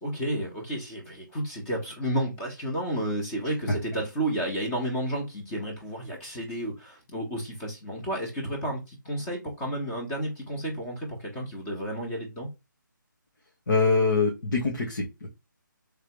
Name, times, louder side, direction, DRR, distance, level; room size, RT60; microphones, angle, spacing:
voice 1, 0.0-12.5, right 1 dB, 15° left, 1.3 m, -31 dB
voice 2, 13.7-15.3, left 3 dB, 60° left, 1.6 m, -24 dB
3.5 x 3.3 x 3.2 m
figure-of-eight pair, 150°, 11 cm